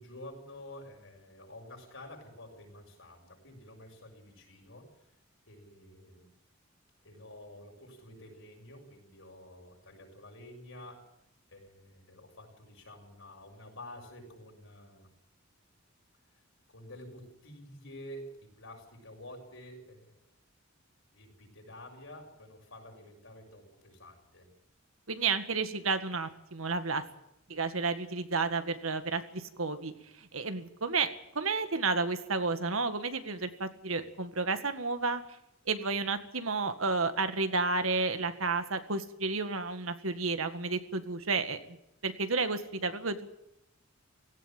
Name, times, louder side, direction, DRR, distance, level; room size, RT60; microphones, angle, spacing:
voice 1, 0.0-4.9 5.5-6.3 7.0-11.0 11.5-15.1 16.7-20.2 21.1-24.5, left 1 dB, 70° left, 2 dB, 7.0 m, -49 dB
voice 2, 25.1-27.0 27.5-29.9 30.3-31.1 31.4-35.2 35.7-41.6 42.0-43.3, right 4 dB, 85° right, 9 dB, 1.8 m, -31 dB
17.0 x 16.5 x 9.2 m, 0.82 s
head